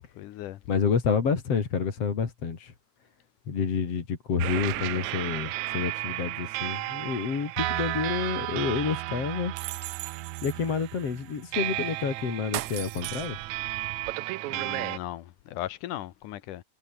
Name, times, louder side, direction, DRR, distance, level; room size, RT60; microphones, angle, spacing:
voice 1, 0.2-0.6 14.5-16.6, left 14 dB, 75° left, 2.5 m, -37 dB
voice 2, 0.7-2.7 3.5-9.5 10.4-13.4, left 6 dB, 50° left, 3.8 m, -29 dB
sound 1, 4.4-15.0, right 18 dB, 75° right, 1.8 m, -33 dB
omnidirectional pair, 3.7 m